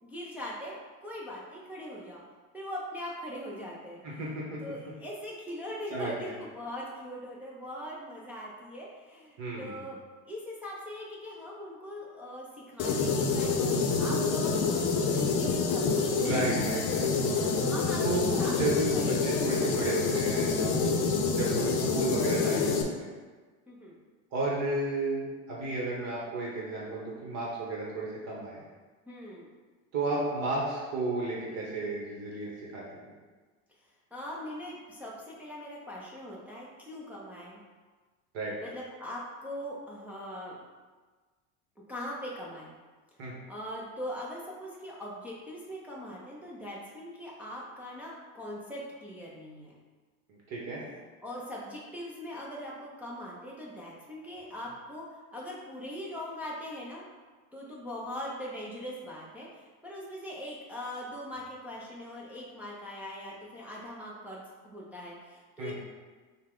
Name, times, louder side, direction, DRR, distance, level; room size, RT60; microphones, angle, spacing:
voice 1, 0.0-2.2 2.5-4.3 4.6-10.0 10.3-13.5 14.0-14.6 15.0-16.5 17.6-18.6 18.9-19.6 23.7-24.0 29.1-29.5 34.1-37.6 38.6-40.6 41.9-42.7 43.5-49.7 51.2-57.0 57.5-65.7, left 1 dB, 5° right, -5 dB, 0.4 m, -41 dB
voice 2, 4.2-4.6 5.9-6.1 9.4-9.8 16.2-17.5 18.0-21.0 21.3-23.1 24.3-28.6 29.9-32.8 38.3-38.5 43.2-43.4 50.3-50.8 65.6-65.7, right 2 dB, 45° right, -4 dB, 1.0 m, -33 dB
sound 1, 12.8-22.8, left 4 dB, 55° left, 0.6 m, -27 dB
5.5 x 2.2 x 3.7 m, 1.4 s
supercardioid pair, 145°, 36 cm